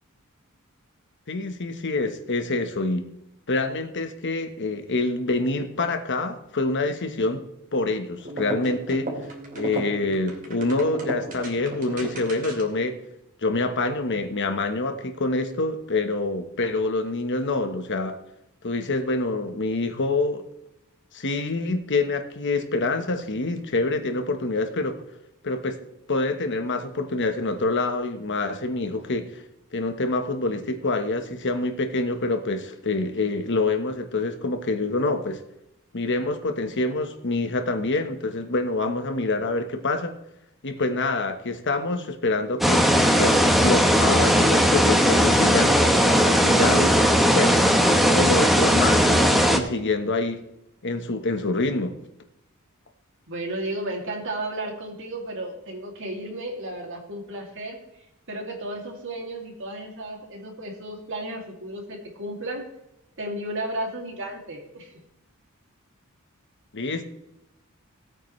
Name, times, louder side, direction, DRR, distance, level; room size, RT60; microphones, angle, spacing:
voice 1, 1.3-3.1 3.5-7.4 7.7-9.1 9.6-13.0 13.4-18.1 18.6-20.4 21.1-25.0 25.4-25.8 26.1-29.4 29.7-35.4 35.9-40.1 40.6-42.9 43.2-45.8 46.3-46.9 47.3-47.6 48.1-50.4 50.8-51.9 66.7-67.0, left 2 dB, 55° left, 7 dB, 1.2 m, -26 dB
sound 1, 8.2-12.8, right 1 dB, 40° right, 2.7 m, -34 dB
sound 2, 42.6-49.6, equal, ahead, 1.1 m, -18 dB
voice 2, 53.3-57.8 58.3-62.7 63.2-64.9, right 1 dB, 60° right, 1 dB, 2.6 m, -33 dB
18.0 x 8.8 x 3.2 m, 0.85 s
head